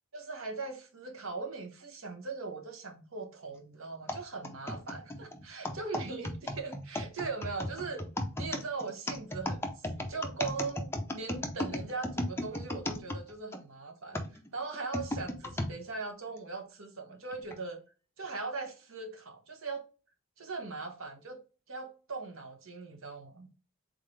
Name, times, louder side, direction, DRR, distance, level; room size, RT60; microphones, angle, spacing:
voice 1, 0.1-8.0 8.4-17.8 18.2-19.9 20.4-21.4 21.7-23.5, right 4 dB, 65° right, 1.0 m, -40 dB
sound 1, 4.1-13.6 14.1-15.7 16.4-16.5 17.3-17.6, left 1 dB, 10° left, 0.5 m, -35 dB
3.8 x 3.6 x 3.2 m
head